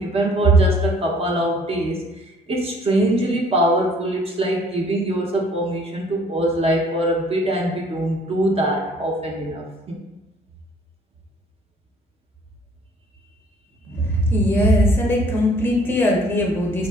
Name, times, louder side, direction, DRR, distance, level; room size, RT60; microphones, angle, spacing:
voice 1, 0.0-2.0 2.5-10.0 13.9-14.2, right 1 dB, 35° right, -1 dB, 0.6 m, -22 dB
voice 2, 14.0-16.9, equal, 15° left, -1 dB, 0.5 m, -19 dB
3.4 x 2.3 x 2.2 m, 1.0 s
cardioid pair, 110°, 17 cm